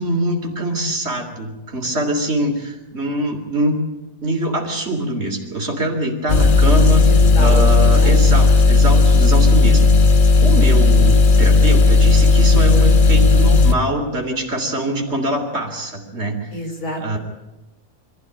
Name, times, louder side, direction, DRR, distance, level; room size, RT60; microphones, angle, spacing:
voice 1, 0.0-3.8 4.2-7.1 7.4-9.9 10.4-16.5 17.0-17.2, right 1 dB, 45° right, 3 dB, 3.6 m, -23 dB
sound 1, 6.3-13.7, left 3 dB, 35° left, 1.1 m, -13 dB
voice 2, 7.1-8.1 16.5-17.2, equal, 80° left, 3 dB, 4.5 m, -29 dB
23.0 x 14.5 x 10.0 m, 1.0 s
omnidirectional pair, 1.6 m